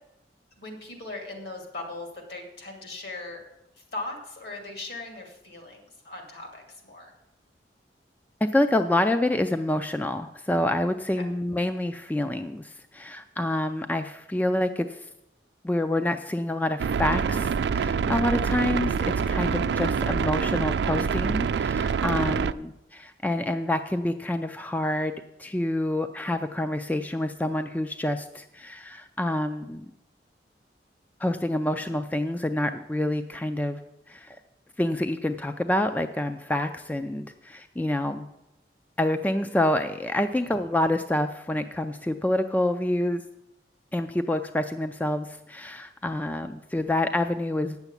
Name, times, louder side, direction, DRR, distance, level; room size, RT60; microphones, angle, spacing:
voice 1, 0.6-3.4 3.7-7.1 11.2-11.3 22.1-22.3 40.2-40.5, left 2 dB, 65° left, 2 dB, 2.5 m, -39 dB
voice 2, 8.4-15.1 15.6-19.0 19.3-25.1 25.4-29.9 31.2-33.8 34.1-34.4 34.8-38.3 39.0-43.2 43.9-47.8, left 1 dB, 10° left, 8 dB, 0.3 m, -27 dB
sound 1, 16.8-22.5, right 6 dB, 70° right, 0.3 m, -26 dB
9.0 x 7.0 x 8.1 m, 0.90 s
head